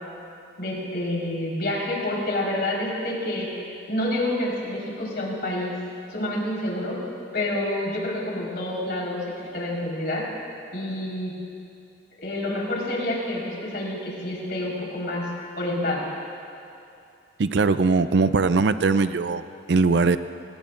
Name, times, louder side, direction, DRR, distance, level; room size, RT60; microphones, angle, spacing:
voice 1, 0.6-5.7 6.1-7.0 7.3-9.2 9.5-10.3 10.7-11.3 12.2-15.3 15.6-16.1, left 1 dB, 60° left, -4 dB, 4.4 m, -28 dB
voice 2, 17.4-20.2, right 4 dB, 75° right, 12 dB, 0.5 m, -21 dB
27.5 x 19.0 x 2.6 m, 2.6 s
head